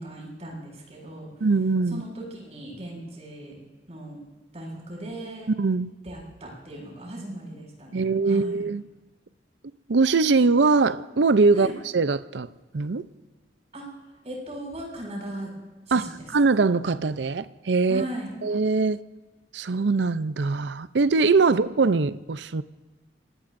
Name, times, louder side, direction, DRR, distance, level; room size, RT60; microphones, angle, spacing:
voice 1, 0.0-1.3 1.9-3.5 3.9-4.2 4.5-5.5 6.0-8.6 11.5-11.8 13.7-13.8 14.2-15.5 15.9-16.3 17.9-18.3 21.5-21.6, right 1 dB, 40° right, 6.5 m, -38 dB
voice 2, 1.4-2.0 5.6-5.9 7.9-8.8 9.9-12.5 12.7-13.0 15.9-18.0 18.4-19.0 19.5-22.6, right 4 dB, 80° right, 0.6 m, -22 dB
25.5 x 19.0 x 2.6 m
head